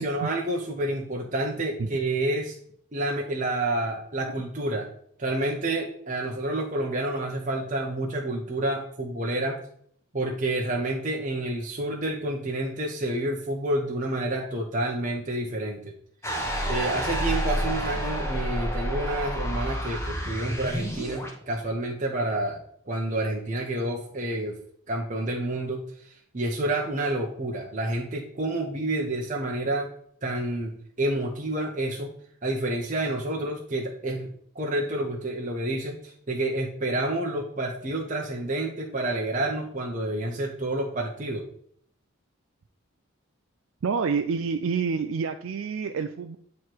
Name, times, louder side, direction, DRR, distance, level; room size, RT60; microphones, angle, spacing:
voice 1, 0.0-2.6 2.9-4.9 5.2-9.6 10.1-15.9 16.7-22.6 22.9-24.6 24.9-25.9 26.3-29.9 30.2-32.1 32.4-34.3 34.5-41.5, right 1 dB, 35° right, -1 dB, 0.8 m, -29 dB
sound 1, 16.2-21.3, equal, 10° left, 1.1 m, -29 dB
voice 2, 43.8-46.4, right 5 dB, 65° right, 7 dB, 0.4 m, -28 dB
9.3 x 3.2 x 4.5 m, 0.63 s
head